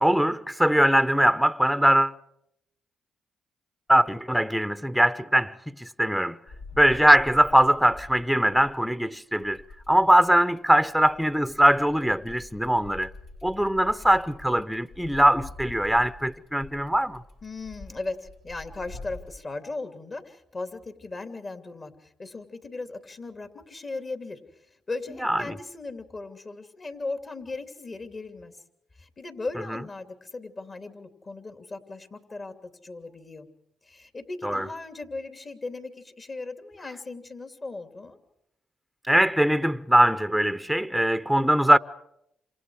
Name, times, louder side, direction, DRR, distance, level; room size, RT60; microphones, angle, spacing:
voice 1, 0.0-2.1 3.9-6.4 6.8-9.6 9.9-13.1 13.4-17.2 25.2-25.5 34.4-34.7 39.1-41.8, right 1 dB, ahead, 0.8 m, -21 dB
sound 1, 6.5-8.9 9.4-19.3, left 2 dB, 85° left, 4.4 m, -46 dB
voice 2, 17.4-24.4 24.7-28.5 29.0-33.5 33.8-38.2, left 3 dB, 40° left, 2.9 m, -37 dB
28.5 x 26.5 x 4.9 m
supercardioid pair, 65°, 0 cm